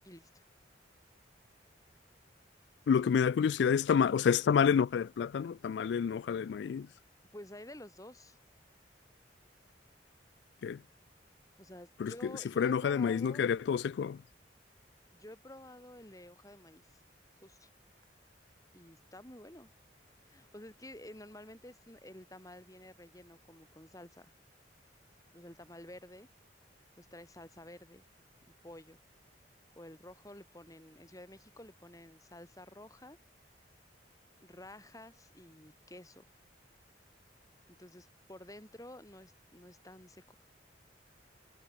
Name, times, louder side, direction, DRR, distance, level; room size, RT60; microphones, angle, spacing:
voice 1, 0.0-0.4 3.0-3.1 7.3-8.4 11.6-13.4 15.1-17.0 17.4-17.7 18.7-19.7 20.3-24.3 25.3-26.3 27.0-28.0 28.6-29.0 29.8-33.2 34.4-36.2 37.7-40.4, left 1 dB, 20° left, 4.5 m, -51 dB
voice 2, 2.9-6.9 10.6-10.8 12.0-12.1 12.6-14.2, left 7 dB, 70° left, 0.3 m, -28 dB
head